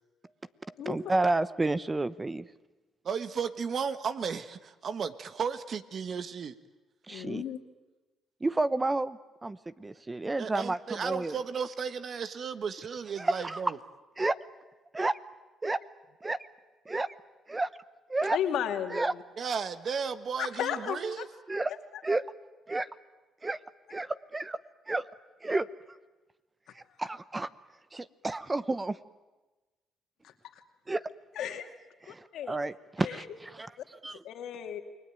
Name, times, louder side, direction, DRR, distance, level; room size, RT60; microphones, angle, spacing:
voice 1, 0.6-2.5 7.1-7.4 8.4-11.4 13.2-13.6 14.2-14.4 14.9-15.2 15.6-15.8 16.2-16.4 16.9-17.1 17.5-17.7 18.1-18.4 18.9-19.1 21.5-21.7 22.0-22.2 22.7-22.9 23.4-23.6 23.9-24.6 24.9-25.0 25.4-25.7 26.7-27.5 27.9-29.0 30.9-31.0 31.4-31.5 32.1-33.7 34.0-34.2, right 2 dB, 20° right, 15 dB, 0.9 m, -31 dB
voice 2, 3.0-6.6 10.4-13.8 19.4-21.3, right 6 dB, 50° right, 12 dB, 1.5 m, -34 dB
voice 3, 7.1-7.6 18.3-19.2 20.4-21.2 31.4-31.7 32.1-32.5 33.0-33.3 33.8-33.9 34.2-34.8, left 9 dB, 75° left, 6 dB, 2.5 m, -34 dB
29.0 x 20.5 x 9.2 m, 1.2 s
cardioid pair, 90°, 0 cm